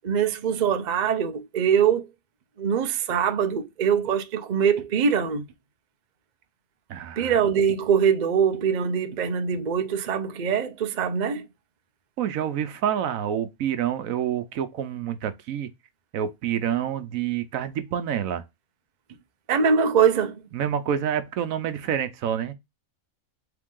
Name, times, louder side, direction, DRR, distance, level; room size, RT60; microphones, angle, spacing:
voice 1, 0.0-2.1 2.6-5.5 7.2-11.5 19.5-20.4, right 7 dB, 50° right, 0.5 m, -23 dB
voice 2, 6.9-7.3 12.2-15.7 16.1-18.4 20.5-22.5, right 9 dB, 75° right, 1.1 m, -28 dB
3.7 x 3.4 x 3.6 m
omnidirectional pair, 1.5 m